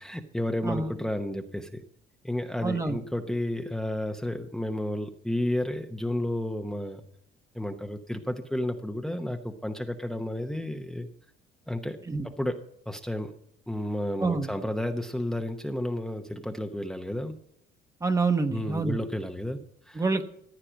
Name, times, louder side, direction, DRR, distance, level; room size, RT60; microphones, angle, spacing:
voice 1, 0.0-1.8 2.2-7.0 7.5-11.1 11.7-12.0 12.2-13.3 13.7-17.4 18.5-20.0, left 1 dB, 5° left, 5 dB, 0.9 m, -32 dB
voice 2, 2.6-3.0 12.1-12.3 14.2-14.5 18.0-19.0 19.9-20.2, right 3 dB, 20° right, 7 dB, 1.1 m, -27 dB
15.0 x 8.8 x 5.1 m, 0.73 s
cardioid pair, 110°, 17 cm